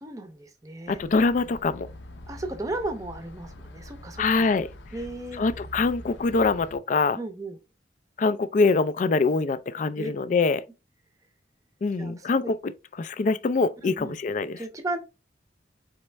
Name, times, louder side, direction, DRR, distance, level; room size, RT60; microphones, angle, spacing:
voice 1, 0.0-1.0 2.3-4.5 4.9-5.4 7.2-7.6 10.0-10.1 12.0-12.5 13.8-14.2 14.6-15.0, right 2 dB, 20° right, 0.6 m, -35 dB
sound 1, 0.9-6.8, left 1 dB, 80° left, 0.7 m, -44 dB
voice 2, 0.9-1.9 4.2-4.7 5.4-7.2 8.2-10.6 11.8-12.6 13.0-14.6, left 4 dB, 40° left, 0.3 m, -24 dB
4.4 x 3.1 x 3.2 m
head